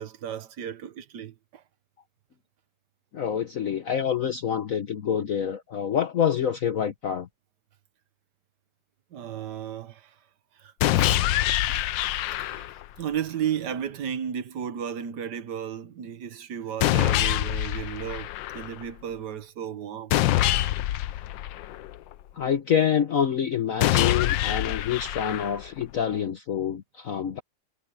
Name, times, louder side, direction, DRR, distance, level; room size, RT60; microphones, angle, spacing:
voice 1, 0.0-1.6 9.1-10.1 10.6-11.2 11.7-11.8 12.4-12.7 13.0-20.2, right 9 dB, 70° right, 1.7 m, -34 dB
voice 2, 3.1-7.3 22.4-27.4, left 8 dB, 55° left, 1.3 m, -26 dB
Hunk's revolver, 10.8-12.8 16.8-18.8 20.1-22.1 23.8-25.8, left 14 dB, 90° left, 1.4 m, -25 dB
omnidirectional pair, 1.9 m